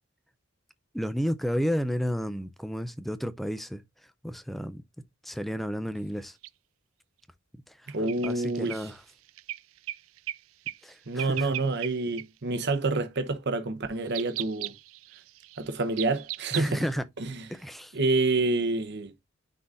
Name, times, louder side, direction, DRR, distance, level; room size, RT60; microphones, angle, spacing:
voice 1, 0.9-3.8 4.2-4.8 5.2-6.3 8.2-9.0 10.8-11.5 16.5-17.0 17.5-17.9, equal, ahead, 0.6 m, -31 dB
sound 1, 6.4-6.5 7.9-10.4 10.7-10.9 11.2-11.9 12.2-12.3 12.9-13.2 14.1-16.9, right 15 dB, 75° right, 0.4 m, -37 dB
voice 2, 7.9-8.9 11.1-14.7 15.6-16.8 17.2-17.5 17.9-19.1, right 2 dB, 55° right, 0.9 m, -28 dB
9.7 x 3.9 x 2.5 m
head